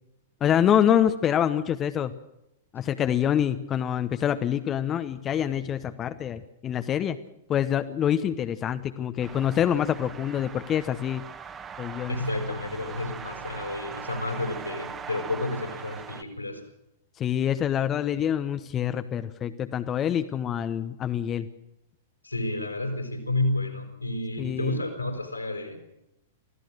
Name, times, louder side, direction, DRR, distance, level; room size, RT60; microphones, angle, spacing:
voice 1, 0.4-2.1 2.7-7.2 7.5-11.2 11.8-12.2 17.2-21.5 24.4-24.8, left 9 dB, 25° left, 10 dB, 1.0 m, -26 dB
sound 1, 9.2-16.2, right 6 dB, 20° right, 1.6 m, -40 dB
voice 2, 12.1-16.6 22.2-25.9, left 2 dB, 90° left, 4 dB, 5.3 m, -31 dB
25.5 x 16.0 x 6.5 m, 0.87 s
figure-of-eight pair, 100°, 0 cm